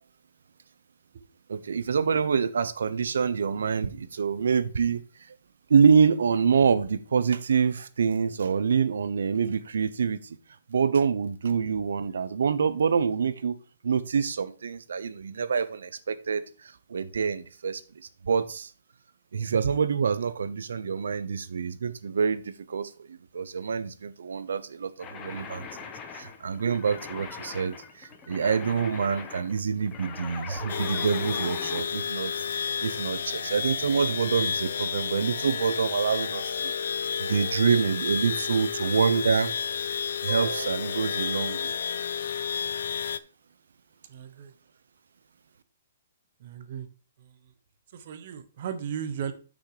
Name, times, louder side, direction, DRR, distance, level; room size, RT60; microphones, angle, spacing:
voice 1, 1.5-5.0 5.7-10.4 10.7-13.6 13.8-17.8 18.2-18.7 19.3-25.7 26.1-32.3 32.8-36.7 37.2-39.9 40.2-41.7, right 6 dB, 85° right, 0.8 m, -26 dB
sound 1, 25.0-31.9, left 6 dB, 15° left, 0.7 m, -41 dB
sound 2, 30.7-43.2, left 7 dB, 55° left, 0.5 m, -31 dB
voice 2, 44.1-44.5 46.4-46.9 47.2-47.3 47.9-49.3, right 8 dB, 35° right, 0.9 m, -36 dB
6.4 x 6.2 x 4.9 m
hypercardioid pair, 180°, 0 cm